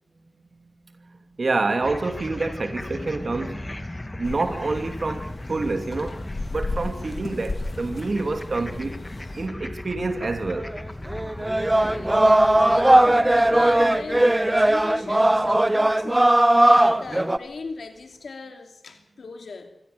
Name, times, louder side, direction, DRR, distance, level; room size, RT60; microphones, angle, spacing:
voice 1, 1.0-3.9 4.1-6.2 6.5-9.0 9.3-10.7, right 3 dB, 65° right, 2.8 m, -27 dB
sound 1, 1.8-17.2, left 1 dB, 25° left, 2.3 m, -38 dB
sound 2, 4.2-9.5, left 2 dB, 55° left, 3.2 m, -35 dB
sound 3, 10.7-10.8 11.1-17.4, right 1 dB, 20° right, 1.2 m, -18 dB
voice 2, 11.5-19.7, left 4 dB, 85° left, 2.8 m, -39 dB
24.5 x 17.5 x 7.0 m
cardioid pair, 40°, 0 cm